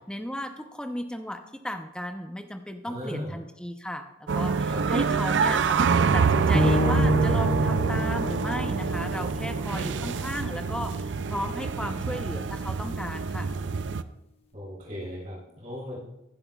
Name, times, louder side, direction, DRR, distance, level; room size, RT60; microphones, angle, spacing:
voice 1, 0.1-13.5, equal, 5° left, 5 dB, 0.7 m, -35 dB
voice 2, 2.8-3.4 4.7-5.2 9.7-10.0 14.5-16.0, equal, 40° right, -6 dB, 3.6 m, -37 dB
sound 1, 4.3-14.0, right 5 dB, 70° right, 0.4 m, -26 dB
sound 2, 6.5-10.7, left 3 dB, 30° left, 1.2 m, -30 dB
16.0 x 10.5 x 2.4 m, 0.89 s
head